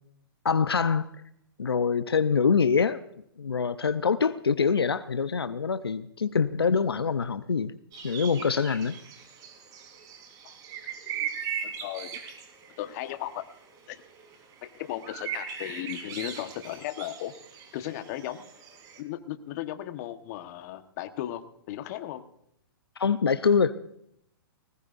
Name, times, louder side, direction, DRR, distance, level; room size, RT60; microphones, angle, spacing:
voice 1, 0.4-1.1 1.6-3.0 3.4-7.7 8.0-9.0 23.0-23.7, left 6 dB, 90° left, 0.8 m, -24 dB
sound 1, 7.9-19.0, right 8 dB, 30° right, 3.4 m, -39 dB
voice 2, 11.6-12.2 12.8-13.5 13.9-14.0 14.6-17.3 17.7-18.5 19.0-22.3, left 13 dB, 45° left, 1.4 m, -36 dB
20.5 x 19.0 x 2.7 m
hypercardioid pair, 125°, 12 cm